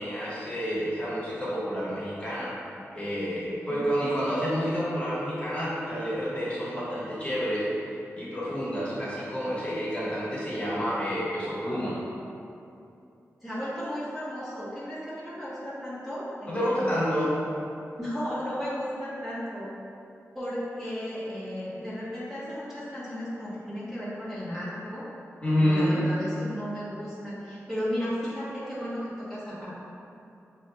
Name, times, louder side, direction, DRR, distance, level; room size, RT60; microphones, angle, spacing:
voice 1, 0.0-2.5 2.9-7.7 8.2-12.0 16.5-17.4 25.4-26.0, equal, 25° left, -9 dB, 1.2 m, -29 dB
voice 2, 13.4-16.9 18.0-19.7 20.3-25.0 25.6-29.8, equal, 5° right, -11 dB, 1.1 m, -34 dB
7.1 x 2.8 x 2.2 m, 2.7 s
wide cardioid pair, 115°, 5 cm